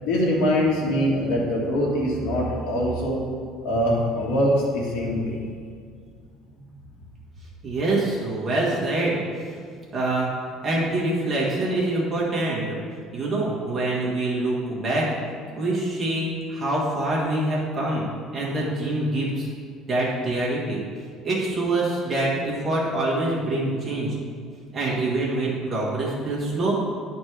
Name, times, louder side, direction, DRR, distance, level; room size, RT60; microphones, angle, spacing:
voice 1, 0.0-3.2 3.6-5.4, equal, 85° left, -2 dB, 1.8 m, -23 dB
voice 2, 7.6-9.5 9.9-10.3 10.6-12.8 13.1-15.1 15.6-18.1 18.3-19.5 19.9-20.8 21.2-24.2 24.7-26.8, right 2 dB, 20° right, -6 dB, 1.8 m, -25 dB
10.5 x 4.3 x 4.7 m, 2.1 s
cardioid pair, 170°, 0 cm